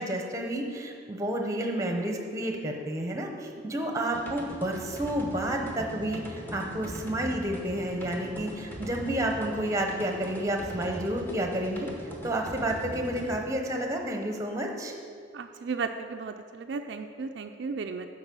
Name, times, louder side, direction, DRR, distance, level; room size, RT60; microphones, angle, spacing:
voice 1, 0.0-11.9 12.2-14.9, right 1 dB, 15° right, 2 dB, 0.8 m, -30 dB
sound 1, 4.1-13.4, equal, 10° left, 0.9 m, -41 dB
voice 2, 15.3-18.1, right 5 dB, 60° right, 6 dB, 0.3 m, -35 dB
8.0 x 5.3 x 6.9 m, 2.4 s
head